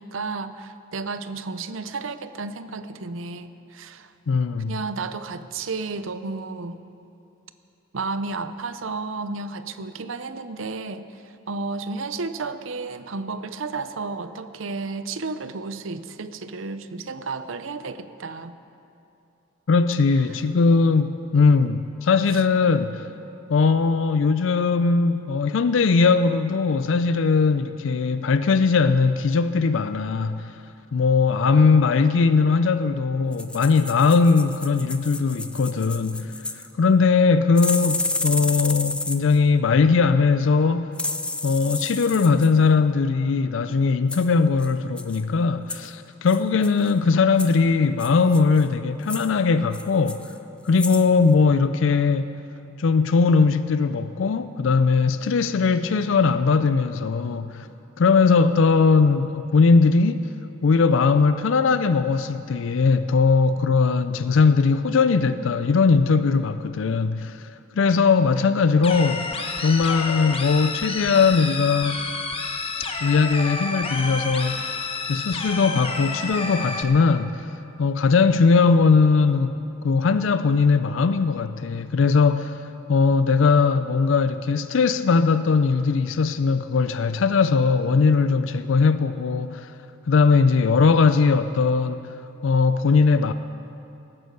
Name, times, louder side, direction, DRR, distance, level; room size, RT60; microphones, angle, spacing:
voice 1, 0.0-4.1 4.7-6.8 7.9-18.6 20.3-20.4, right 3 dB, 70° right, 0.7 m, -32 dB
voice 2, 4.3-4.8 19.7-23.1 23.5-30.5 30.9-36.3 36.8-41.0 41.4-50.2 50.7-52.3 52.8-57.7 58.0-60.3 60.6-67.4 67.8-69.2 69.6-72.1 73.0-74.6 75.1-77.4 77.8-82.6 82.9-89.7 90.1-92.0 92.4-93.3, left 4 dB, 65° left, 0.4 m, -20 dB
sound 1, 33.3-36.7 37.6-39.4 40.9-42.5 44.1-44.3 44.6-44.7 45.0-45.2 45.7-45.9 46.3-46.9 47.4-47.6 48.0-48.6 49.0-49.3 49.7-50.4 50.7-51.1 51.3-51.4, left 2 dB, 5° left, 0.4 m, -31 dB
sound 2, 68.8-76.8, left 3 dB, 30° left, 1.0 m, -30 dB
18.0 x 9.8 x 6.6 m
head